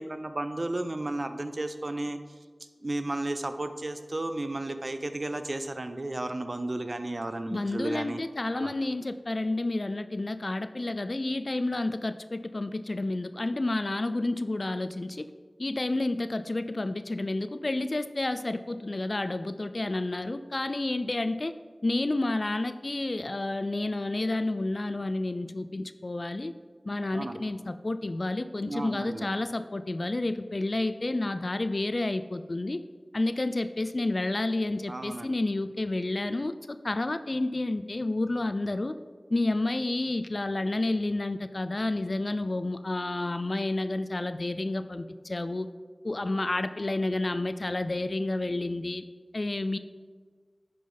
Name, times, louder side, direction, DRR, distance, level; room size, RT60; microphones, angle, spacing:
voice 1, 0.0-2.2 2.8-8.2 8.5-8.7 27.1-27.4 28.6-29.3 34.9-35.3, right 2 dB, 50° right, 9 dB, 0.5 m, -33 dB
voice 2, 7.5-15.3 15.6-21.5 21.8-26.5 26.9-32.8 33.1-38.9 39.3-45.7 46.0-49.0 49.3-49.8, left 2 dB, 50° left, 11 dB, 0.3 m, -30 dB
11.0 x 5.1 x 3.9 m, 1.5 s
wide cardioid pair, 55°, 0 cm